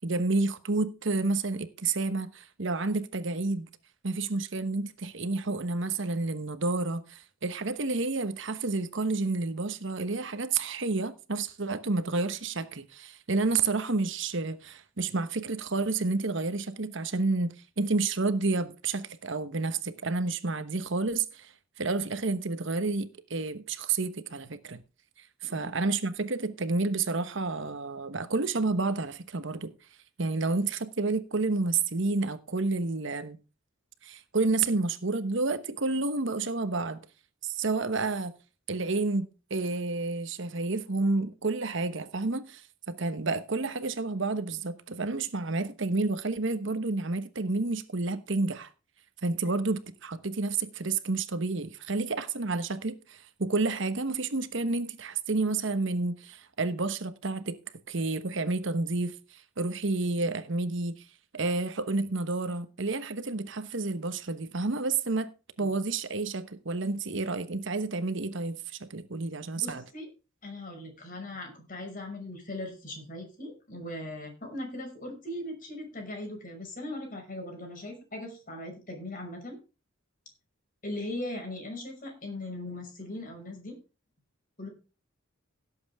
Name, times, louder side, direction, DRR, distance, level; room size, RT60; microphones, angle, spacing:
voice 1, 0.0-3.7 4.0-24.8 25.2-29.7 30.2-33.4 34.0-37.0 37.4-38.3 38.7-48.7 49.2-57.6 57.9-61.0 61.3-65.3 65.6-69.8, right 3 dB, 60° right, 1.1 m, -30 dB
voice 2, 69.6-70.1 70.4-79.6 80.8-83.8 84.6-84.7, left 1 dB, 40° left, 5.8 m, -39 dB
17.0 x 7.9 x 3.6 m
head